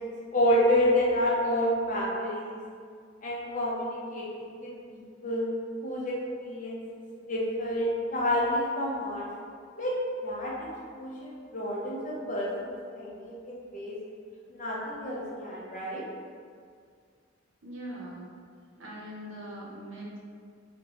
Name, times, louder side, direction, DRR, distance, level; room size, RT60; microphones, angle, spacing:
voice 1, 0.0-2.6 3.2-5.5 5.8-6.8 7.3-9.3 9.8-10.5 10.9-14.0 14.5-16.0, left 1 dB, 40° left, -5 dB, 0.6 m, -29 dB
voice 2, 17.6-18.3 18.8-20.2, right 1 dB, 80° right, -4 dB, 0.6 m, -41 dB
2.9 x 2.1 x 2.8 m, 2.1 s
head